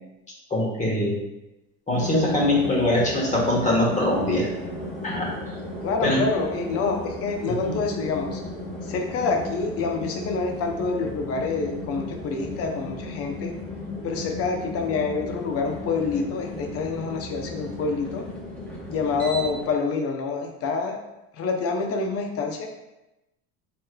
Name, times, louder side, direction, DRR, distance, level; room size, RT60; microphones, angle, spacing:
voice 1, 0.5-1.2 1.9-4.5 5.0-5.3 6.0-6.2 7.6-7.8, left 1 dB, 25° left, -4 dB, 1.3 m, -22 dB
sound 1, 1.9-19.7, left 1 dB, 5° left, 0.8 m, -35 dB
voice 2, 5.8-8.4 8.8-13.5 14.0-18.3 18.9-21.0 21.3-22.7, left 4 dB, 50° left, 3 dB, 0.7 m, -27 dB
4.7 x 3.1 x 2.2 m, 0.95 s
cardioid pair, 120°, 31 cm